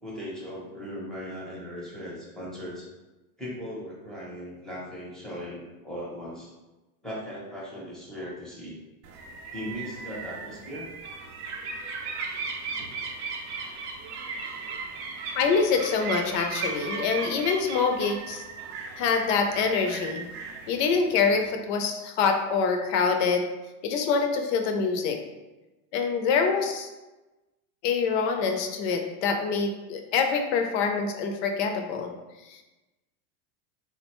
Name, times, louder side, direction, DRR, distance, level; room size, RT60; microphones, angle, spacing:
voice 1, 0.0-2.9 3.4-6.5 7.0-8.8 9.5-10.9, equal, ahead, -6 dB, 0.6 m, -38 dB
Seagulls in Kiel, 9.0-21.5, right 4 dB, 50° right, 0.5 m, -37 dB
voice 2, 15.3-18.4 19.0-20.3 20.7-23.4 23.8-25.2 25.9-26.9 27.8-32.1 32.5-32.6, left 5 dB, 50° left, 4 dB, 0.5 m, -25 dB
3.8 x 2.1 x 2.9 m, 1.1 s
supercardioid pair, 140°, 44 cm